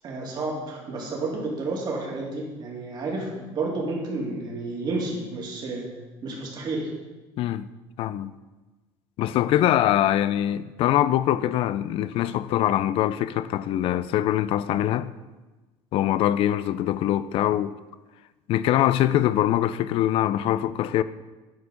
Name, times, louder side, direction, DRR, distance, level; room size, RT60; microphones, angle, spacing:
voice 1, 0.0-5.9 6.2-6.9, right 3 dB, 40° right, 2.5 m, -31 dB
voice 2, 7.4-7.7 8.0-8.3 9.2-15.1 15.9-17.7 18.5-21.0, left 12 dB, 55° left, 0.4 m, -23 dB
10.0 x 4.9 x 5.2 m
cardioid pair, 135°, 11 cm